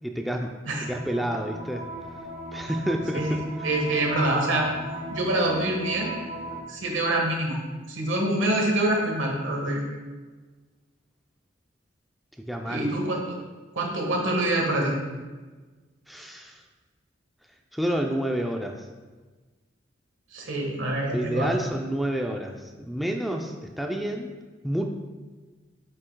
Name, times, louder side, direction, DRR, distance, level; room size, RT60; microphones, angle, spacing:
voice 1, 0.0-0.5 0.8-1.9 2.5-3.7 12.4-12.9 16.1-16.6 17.7-18.9 21.0-24.3 24.6-24.9, right 1 dB, ahead, 2 dB, 0.3 m, -29 dB
sound 1, 0.7-6.6, right 1 dB, 40° right, 1.1 m, -37 dB
voice 2, 3.6-4.7 5.1-6.1 6.7-7.6 7.9-9.8 12.6-13.2 13.7-15.0 20.3-21.5, right 1 dB, 90° right, 0 dB, 1.4 m, -25 dB
7.5 x 6.4 x 2.2 m, 1.3 s
head